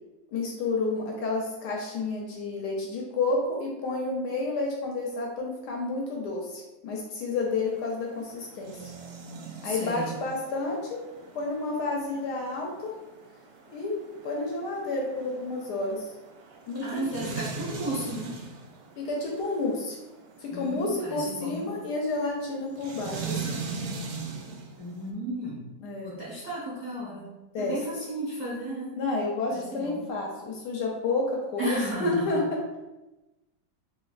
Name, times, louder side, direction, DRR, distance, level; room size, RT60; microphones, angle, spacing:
voice 1, 0.3-8.9 9.6-11.0 11.3-12.9 13.7-13.9 14.2-16.1 16.7-17.3 19.0-20.0 20.4-23.7 25.8-26.2 27.5-27.8 29.0-32.6, left 3 dB, 75° left, -1 dB, 1.0 m, -30 dB
sound 1, 7.4-25.1, right 4 dB, 85° right, 1.4 m, -41 dB
voice 2, 9.6-10.1 16.8-18.4 20.5-21.7 24.8-25.7 26.0-29.0 29.5-30.0 31.6-32.4, right 1 dB, 60° right, -8 dB, 0.4 m, -34 dB
3.1 x 3.0 x 2.4 m, 1.1 s
omnidirectional pair, 2.1 m